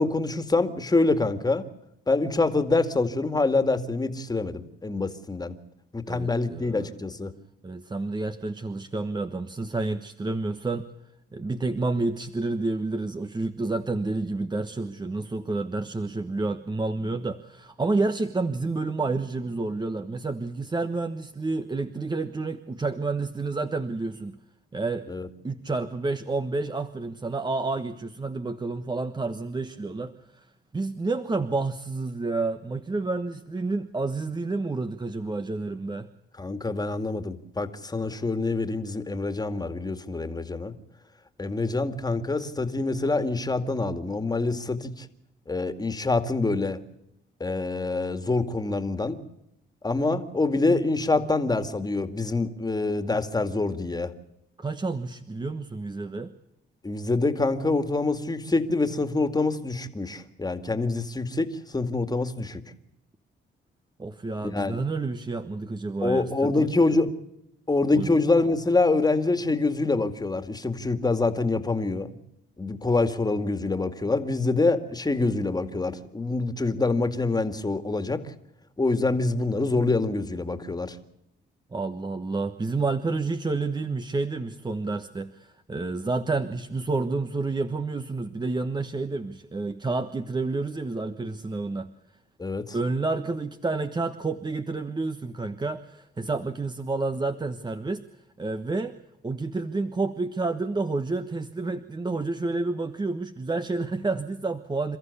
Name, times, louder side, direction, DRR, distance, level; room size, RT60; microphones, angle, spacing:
voice 1, 0.0-1.7 2.1-5.6 5.9-7.3 25.1-25.3 36.4-40.7 41.4-45.1 45.5-46.8 47.4-49.2 49.8-54.1 56.8-62.6 64.4-64.8 66.0-67.1 67.7-72.1 72.6-78.3 78.8-81.0 92.4-92.8, left 3 dB, 20° left, 9 dB, 2.2 m, -25 dB
voice 2, 6.1-6.9 7.6-10.9 11.3-24.4 24.7-25.1 25.4-30.5 30.7-36.1 54.6-56.3 64.0-66.7 67.9-68.1 81.7-91.9 92.7-98.0 98.4-98.9 99.2-105.0, right 3 dB, 20° right, 9 dB, 1.3 m, -29 dB
28.5 x 14.0 x 8.3 m, 0.84 s
cardioid pair, 90°, 20 cm